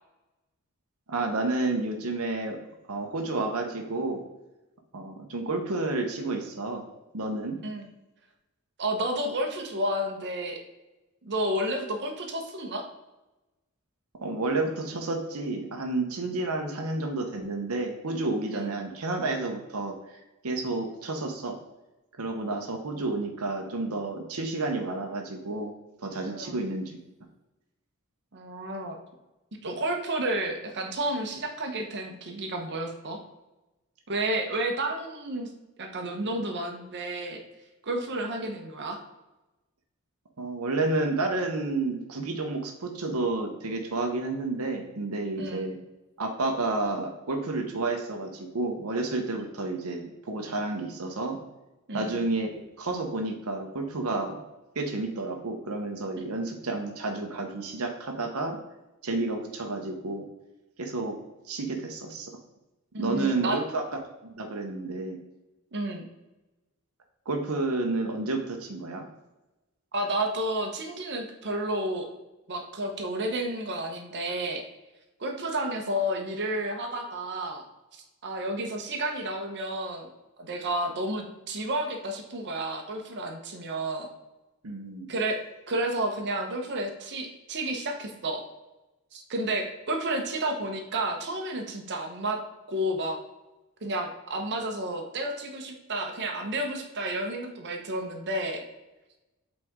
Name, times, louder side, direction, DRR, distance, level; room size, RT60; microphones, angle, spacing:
voice 1, 1.1-2.6 2.9-4.2 4.9-6.8 7.1-7.6 14.2-21.6 22.2-25.7 26.0-27.0 40.4-45.8 46.2-51.4 51.9-54.4 54.7-58.6 59.0-60.3 60.8-61.2 61.5-62.3 63.0-63.8 64.2-65.2 67.3-69.0 84.6-85.1, right 2 dB, 80° right, 3 dB, 0.9 m, -30 dB
voice 2, 8.8-10.6 11.2-12.9 18.5-18.7 26.3-26.5 28.3-29.0 29.6-33.2 34.1-35.5 35.8-37.4 37.8-39.0 45.4-45.7 51.9-52.2 62.9-63.6 65.7-66.1 69.9-72.1 72.5-74.6 75.2-77.7 77.9-80.1 80.4-84.1 85.1-85.4 85.7-88.4 89.1-92.4 92.7-93.2 93.8-98.6, right 1 dB, 55° right, 3 dB, 1.0 m, -31 dB
8.0 x 4.2 x 3.6 m, 1.0 s
head